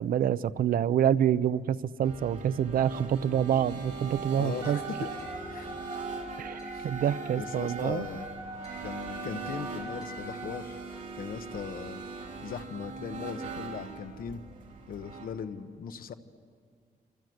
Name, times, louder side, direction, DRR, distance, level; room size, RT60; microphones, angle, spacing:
voice 1, 0.0-4.8 6.4-8.1, right 9 dB, 75° right, 15 dB, 0.6 m, -27 dB
sound 1, 2.0-15.3, right 4 dB, 60° right, 3.6 m, -41 dB
voice 2, 4.3-5.1 5.5-5.7 6.7-6.9 7.4-8.3 8.8-10.8 11.2-12.0 12.4-14.4 14.9-16.1, left 7 dB, 75° left, 9 dB, 1.2 m, -39 dB
sound 2, 4.4-5.7 6.6-8.0 8.3-9.2 10.0-10.9, left 1 dB, 25° left, 7.0 m, -53 dB
Wind instrument woodwind instrument, 4.6-10.7, right 1 dB, 25° right, 2.6 m, -43 dB
27.0 x 26.5 x 7.9 m, 2.1 s
wide cardioid pair, 175°, 15 cm